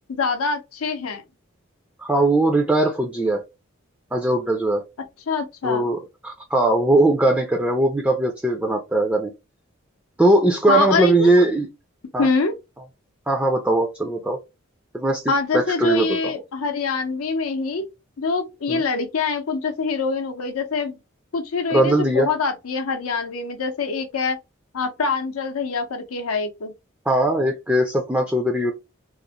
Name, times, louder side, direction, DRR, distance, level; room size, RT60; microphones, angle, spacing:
voice 1, 0.1-1.2 5.3-5.9 10.7-11.4 12.2-12.5 15.3-17.8 18.2-21.0 21.3-24.4 24.7-26.7, left 4 dB, 90° left, 0.6 m, -24 dB
voice 2, 2.0-3.4 4.1-4.8 5.6-9.3 10.2-11.7 12.1-12.3 13.3-14.4 14.9-16.4 18.7-18.8 21.7-22.3 27.1-28.7, right 1 dB, 5° right, 0.3 m, -20 dB
2.4 x 2.0 x 2.8 m
head